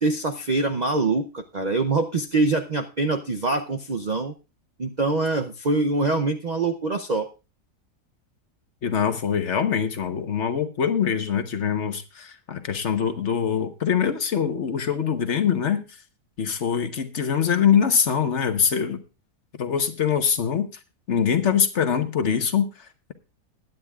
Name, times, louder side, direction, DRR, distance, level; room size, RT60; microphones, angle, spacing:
voice 1, 0.0-4.3 4.8-7.3, right 3 dB, 80° right, 6 dB, 0.3 m, -24 dB
voice 2, 8.8-15.8 16.4-19.0 19.6-20.7 21.1-23.1, left 7 dB, 50° left, 9 dB, 1.2 m, -23 dB
21.0 x 9.4 x 2.4 m, 0.30 s
omnidirectional pair, 1.7 m